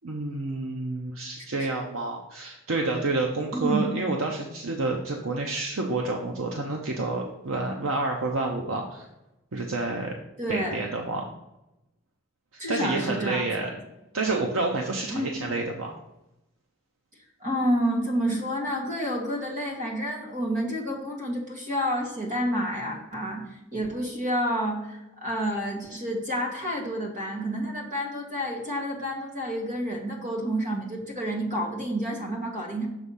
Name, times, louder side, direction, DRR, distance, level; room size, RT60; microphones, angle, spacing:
voice 1, 0.0-9.1 9.5-10.1 10.5-11.2 12.5-13.7 14.1-16.0, right 3 dB, 85° right, 1 dB, 0.7 m, -29 dB
voice 2, 3.5-3.9 10.4-10.8 12.6-13.7 15.1-15.3 17.4-32.9, equal, 40° right, 0 dB, 1.7 m, -29 dB
6.9 x 3.5 x 5.5 m, 0.92 s
head